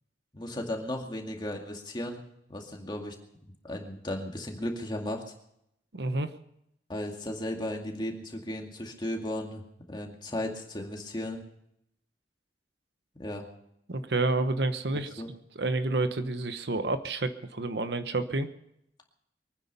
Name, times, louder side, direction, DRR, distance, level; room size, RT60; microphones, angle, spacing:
voice 1, 0.3-2.2 2.5-3.2 3.6-5.2 6.9-9.6 9.9-11.4 13.2-13.5 14.9-15.3, left 1 dB, 25° left, 2 dB, 2.2 m, -35 dB
voice 2, 5.9-6.3 13.9-15.2 15.6-18.5, right 2 dB, 70° right, 10 dB, 1.0 m, -29 dB
23.5 x 9.6 x 5.5 m, 0.77 s
head